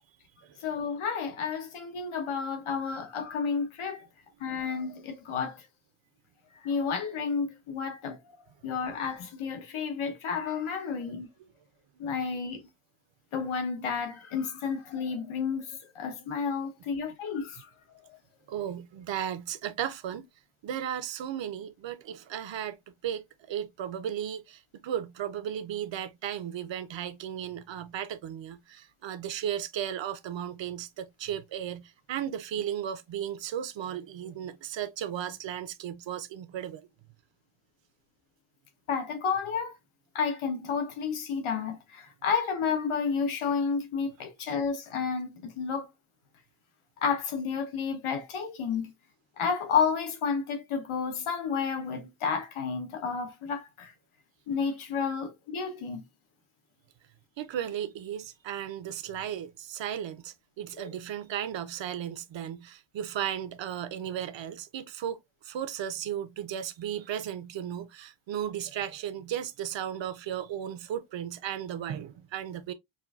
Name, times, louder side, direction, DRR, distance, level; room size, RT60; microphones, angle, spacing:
voice 1, 0.6-4.1 4.4-5.6 6.6-8.4 8.6-11.3 12.0-12.6 13.3-17.7 38.9-39.7 40.1-45.9 47.0-48.9 49.4-53.9 54.5-56.0 60.7-60.9, left 6 dB, 90° left, 1.1 m, -31 dB
voice 2, 18.5-20.3 20.6-22.8 23.0-36.8 57.4-65.2 65.4-72.7, right 10 dB, 65° right, 0.7 m, -35 dB
5.4 x 2.6 x 2.4 m
wide cardioid pair, 170°, 48 cm